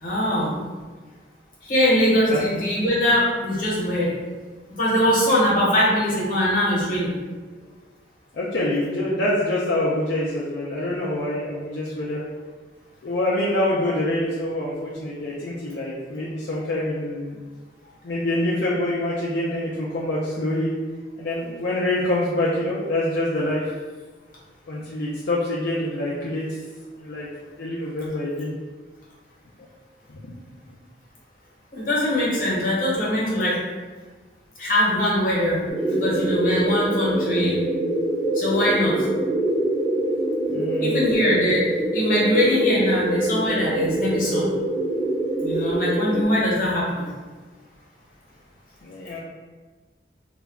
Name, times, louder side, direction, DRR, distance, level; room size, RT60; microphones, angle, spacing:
voice 1, 0.0-0.6 1.6-4.1 4.8-7.1 31.7-33.6 34.6-35.6 35.9-37.6 38.3-38.9 40.8-44.5 45.4-47.1, left 1 dB, 45° left, -6 dB, 0.8 m, -22 dB
voice 2, 8.3-12.2 13.0-17.4 18.0-20.7 21.2-23.6 24.7-26.5 27.0-27.3 27.6-28.5 30.1-30.3 30.6-30.8 40.5-41.0 48.8-49.2, left 1 dB, 65° left, -6 dB, 0.4 m, -25 dB
sound 1, 35.7-46.2, right 1 dB, 5° right, 0.6 m, -24 dB
2.2 x 2.1 x 3.5 m, 1.4 s
head